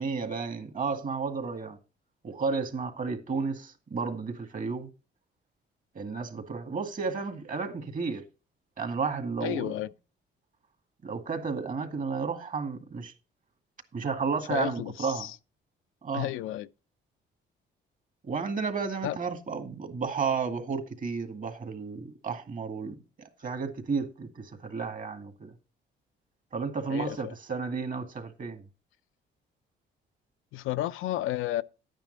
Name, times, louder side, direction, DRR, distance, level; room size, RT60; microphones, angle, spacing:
voice 1, 0.0-1.8 2.2-4.9 6.0-8.2 8.8-9.7 11.0-13.1 13.9-15.3 16.0-16.3 18.2-25.5 26.5-28.6, right 5 dB, 40° right, 2.0 m, -32 dB
voice 2, 9.4-9.9 14.5-15.4 16.1-16.7 19.0-19.2 26.9-27.3 30.5-31.6, left 14 dB, 85° left, 0.5 m, -32 dB
11.0 x 9.0 x 4.0 m
cardioid pair, 90°, 20 cm